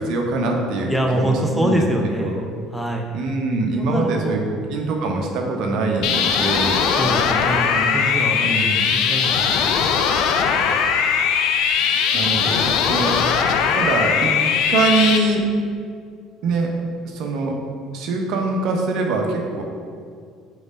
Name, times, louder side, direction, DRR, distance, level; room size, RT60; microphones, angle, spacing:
voice 1, 0.0-1.8 2.0-2.4 3.1-6.8 7.7-8.0 8.4-8.9 12.1-13.1 13.8-14.3 14.7-15.4 16.4-16.7 17.0-17.5 17.9-19.6, right 3 dB, 60° right, 1 dB, 1.0 m, -23 dB
voice 2, 0.9-3.1 3.8-4.4 7.0-9.9 10.3-10.8, right 1 dB, ahead, 1 dB, 0.8 m, -25 dB
sound 1, 6.0-15.2, left 6 dB, 65° left, 0.5 m, -19 dB
5.1 x 4.1 x 5.4 m, 2.2 s
hypercardioid pair, 60°, 0 cm